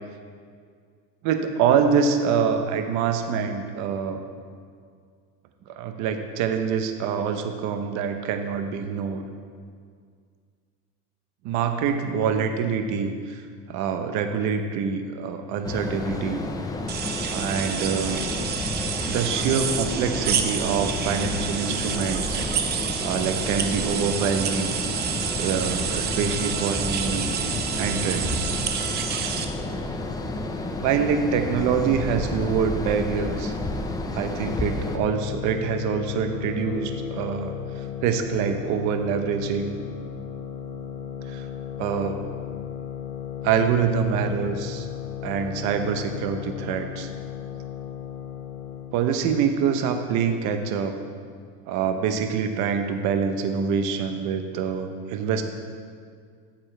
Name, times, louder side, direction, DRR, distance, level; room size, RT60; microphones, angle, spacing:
voice 1, 1.2-4.2 5.7-9.2 11.4-13.4 13.7-16.4 17.3-18.2 19.1-22.4 23.0-24.7 25.4-27.3 27.8-28.5 30.8-33.5 34.1-39.8 41.3-41.5 41.8-42.2 43.4-44.9 45.2-47.1 48.9-51.0 51.7-55.4, right 6 dB, 60° right, 7 dB, 0.9 m, -25 dB
sound 1, 15.6-35.0, left 2 dB, 10° left, 0.5 m, -31 dB
sound 2, 16.9-29.4, right 8 dB, 30° right, 0.6 m, -29 dB
sound 3, 34.5-49.0, left 9 dB, 55° left, 1.1 m, -35 dB
13.0 x 7.0 x 3.4 m, 2.1 s
cardioid pair, 145°, 33 cm